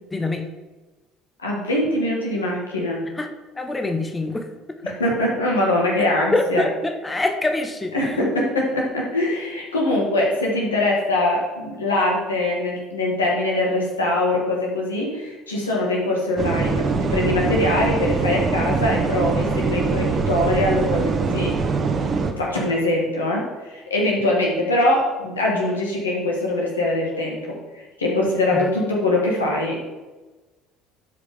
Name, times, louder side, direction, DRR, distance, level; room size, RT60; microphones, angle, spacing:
voice 1, 0.1-0.5 3.2-3.3 3.6-4.8 6.3-7.9 28.5-28.7, left 2 dB, 20° left, 6 dB, 1.0 m, -25 dB
voice 2, 1.4-3.0 4.8-6.7 7.9-21.5 22.4-27.6 28.0-29.7, left 1 dB, 90° left, -2 dB, 1.7 m, -22 dB
sound 1, 16.4-22.3, right 4 dB, 40° right, 1.0 m, -23 dB
11.5 x 4.9 x 3.6 m, 1.2 s
hypercardioid pair, 60°, 0 cm